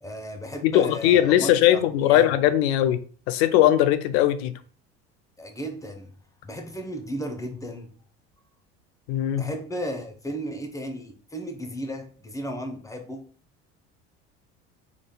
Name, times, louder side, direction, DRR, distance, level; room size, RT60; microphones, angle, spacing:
voice 1, 0.0-2.3 5.4-6.1 6.4-8.0 9.3-13.3, equal, 10° left, 0.8 m, -34 dB
voice 2, 0.6-3.0 3.3-4.6 9.1-9.5, left 12 dB, 80° left, 0.5 m, -20 dB
3.7 x 3.5 x 2.2 m
hypercardioid pair, 80°, 32 cm